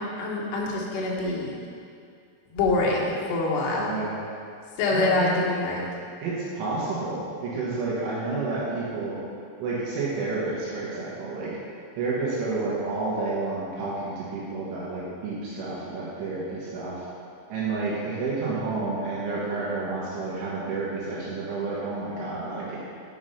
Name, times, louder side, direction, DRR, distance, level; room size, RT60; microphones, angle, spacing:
voice 1, 0.0-1.5 2.5-3.9 4.8-5.8, left 2 dB, 65° left, -4 dB, 3.1 m, -25 dB
voice 2, 3.8-4.2 4.9-5.4 6.2-9.2 9.6-11.5 12.0-17.1 17.5-22.8, right 3 dB, 75° right, -6 dB, 3.8 m, -30 dB
7.7 x 7.3 x 5.6 m, 2.4 s
omnidirectional pair, 5.8 m